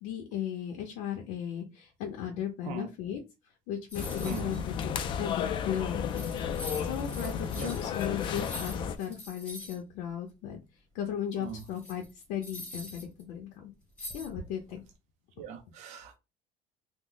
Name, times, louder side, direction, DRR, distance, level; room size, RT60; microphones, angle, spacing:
voice 1, 0.0-3.2 3.7-6.2 6.8-10.6 10.9-12.0 12.3-13.7 14.1-14.8, left 9 dB, 80° left, 0.7 m, -36 dB
sound 1, 3.9-9.0, left 7 dB, 35° left, 0.4 m, -33 dB
sound 2, 3.9-4.6 5.0-5.1 5.8-5.9 6.1-9.8 11.3-13.2 14.0-14.7, left 1 dB, 10° left, 1.0 m, -44 dB
voice 2, 4.2-4.6 7.5-7.8 11.4-11.6 15.4-16.2, right 7 dB, 60° right, 0.6 m, -41 dB
3.0 x 2.1 x 3.8 m
cardioid pair, 165°, 13 cm